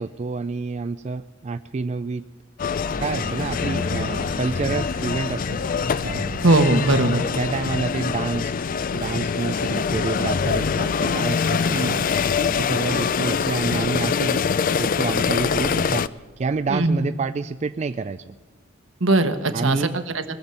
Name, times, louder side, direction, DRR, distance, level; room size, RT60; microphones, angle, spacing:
voice 1, 0.0-2.2 3.0-5.6 5.9-6.4 7.4-8.5 8.9-12.0 12.6-14.4 14.8-16.1 16.4-18.3 19.5-20.0, right 4 dB, 35° right, 10 dB, 0.3 m, -28 dB
sound 1, 2.6-16.1, left 6 dB, 45° left, 0.4 m, -24 dB
sound 2, 2.9-17.0, left 1 dB, 90° left, 5.8 m, -41 dB
voice 2, 6.4-7.2 11.7-11.9 12.8-13.0 16.7-17.1 19.0-20.2, right 2 dB, 70° right, 8 dB, 1.3 m, -20 dB
20.5 x 7.3 x 7.9 m, 1.4 s
head